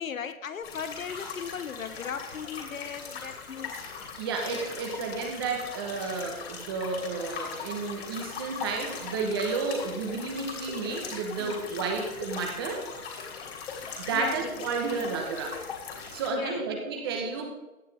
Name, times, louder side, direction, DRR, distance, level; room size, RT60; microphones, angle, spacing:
voice 1, 0.0-3.8 11.4-11.6 14.1-14.7 16.3-16.6, left 7 dB, 65° left, 1.0 m, -37 dB
sound 1, 0.6-16.3, left 5 dB, 45° left, 3.0 m, -40 dB
voice 2, 4.2-12.8 14.1-15.6 16.1-17.6, right 4 dB, 15° right, 1.1 m, -31 dB
16.0 x 8.7 x 3.5 m
hypercardioid pair, 165°, 43 cm